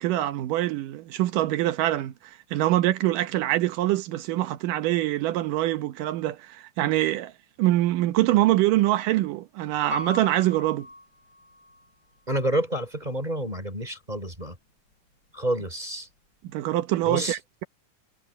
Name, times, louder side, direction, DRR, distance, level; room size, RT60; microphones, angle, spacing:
voice 1, 0.0-7.3 7.6-10.9 16.5-17.6, right 15 dB, 85° right, 2.6 m, -24 dB
Piano, 9.9-11.9 12.5-12.6, left 1 dB, 35° left, 5.2 m, -38 dB
voice 2, 12.3-14.6 15.3-16.1 17.0-17.4, right 1 dB, 15° right, 3.4 m, -29 dB
omnidirectional pair, 3.7 m